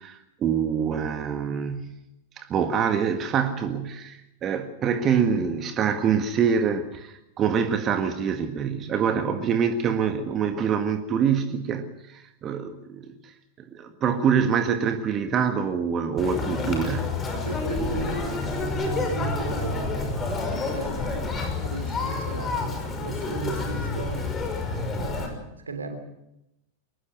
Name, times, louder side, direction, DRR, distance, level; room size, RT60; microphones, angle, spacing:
voice 1, 0.0-2.0 2.4-13.3 13.6-17.2, right 7 dB, 30° right, 8 dB, 1.8 m, -25 dB
Conversation, 16.2-25.3, left 3 dB, 20° left, 5.8 m, -29 dB
voice 2, 17.4-20.2 20.7-21.4 21.6-24.3 25.0-26.0, right 3 dB, 75° right, 8 dB, 3.3 m, -36 dB
23.5 x 20.5 x 6.4 m, 0.86 s
figure-of-eight pair, 90°, 0 cm